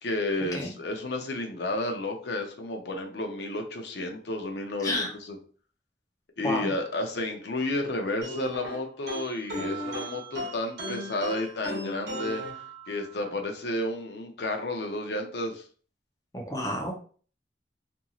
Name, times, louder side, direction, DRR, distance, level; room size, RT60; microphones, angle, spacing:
voice 1, 0.0-5.4 6.4-12.4 12.9-15.6, left 2 dB, 65° left, 4 dB, 0.6 m, -31 dB
voice 2, 4.8-5.1 6.4-6.7 16.3-16.9, left 1 dB, 20° left, 0 dB, 0.6 m, -30 dB
sound 1, 8.2-13.3, equal, 75° right, 1.1 m, -36 dB
2.9 x 2.6 x 2.4 m, 0.42 s
head